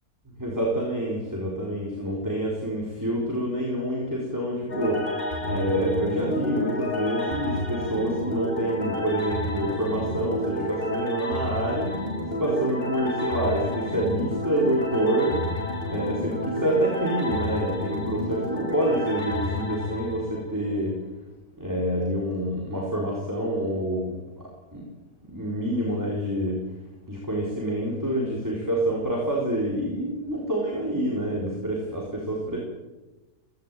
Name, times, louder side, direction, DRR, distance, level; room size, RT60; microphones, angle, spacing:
voice 1, 0.4-5.2 5.4-12.1 12.4-21.0 21.6-24.4 24.7-24.9 25.3-26.6 27.1-32.6, right 1 dB, 10° right, -3 dB, 4.3 m, -27 dB
sound 1, 4.7-20.8, left 1 dB, 40° left, 3.3 m, -30 dB
17.0 x 17.0 x 9.1 m, 1.1 s
omnidirectional pair, 1.5 m